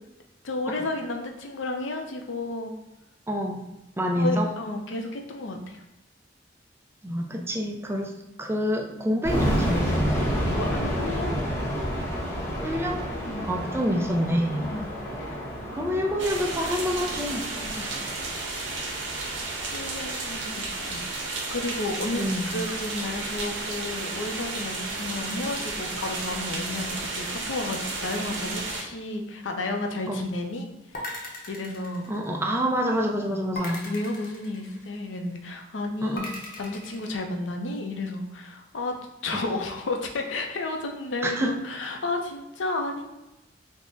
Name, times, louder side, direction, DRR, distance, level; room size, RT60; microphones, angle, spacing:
voice 1, 0.4-2.7 4.2-5.8 10.5-11.3 13.2-13.5 14.6-14.9 15.2-15.5 17.6-17.9 19.7-20.6 20.9-30.7 30.9-32.1 33.3-43.0, left 2 dB, 85° left, 3 dB, 0.5 m, -32 dB
voice 2, 3.3-3.6 4.0-4.5 7.0-8.1 8.4-10.2 12.6-13.1 13.4-14.7 15.7-17.5 17.8-17.9 22.2-22.8 30.1-30.2 32.1-33.9 36.0-36.3 39.3-39.4 41.2-41.6, equal, 15° right, 2 dB, 0.4 m, -27 dB
sound 1, 9.2-20.1, equal, 15° left, 0.8 m, -30 dB
sound 2, 16.2-28.8, right 3 dB, 85° right, 0.7 m, -33 dB
sound 3, 30.9-32.7 33.5-35.2 36.2-37.1, left 1 dB, 50° left, 0.8 m, -38 dB
3.5 x 2.1 x 3.8 m, 0.92 s
head